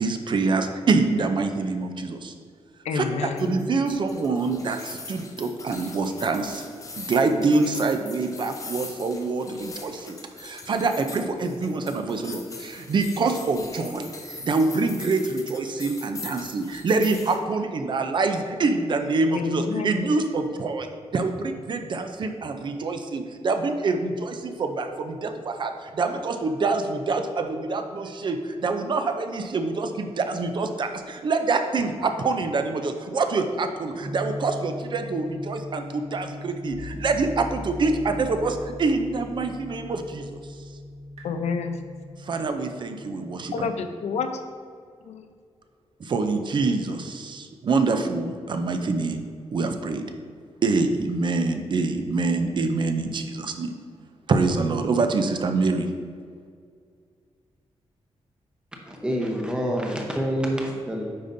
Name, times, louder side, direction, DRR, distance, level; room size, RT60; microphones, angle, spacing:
voice 1, 0.0-2.3 2.9-6.7 7.0-20.9 21.1-40.4 42.2-43.7 46.0-49.2 49.5-50.0 50.6-53.7 54.3-55.9, right 3 dB, 45° right, 7 dB, 0.5 m, -25 dB
voice 2, 2.8-3.6 19.3-20.1 41.2-41.8 43.5-44.3 45.0-45.3, left 5 dB, 85° left, 7 dB, 0.5 m, -29 dB
sound 1, 3.4-17.4, left 3 dB, 30° left, 0.7 m, -41 dB
sound 2, 34.0-43.7, left 1 dB, 75° right, 1.4 m, -39 dB
voice 3, 58.8-61.1, equal, 10° right, 0 dB, 0.8 m, -27 dB
9.4 x 5.1 x 2.6 m, 2.1 s
wide cardioid pair, 155°, 11 cm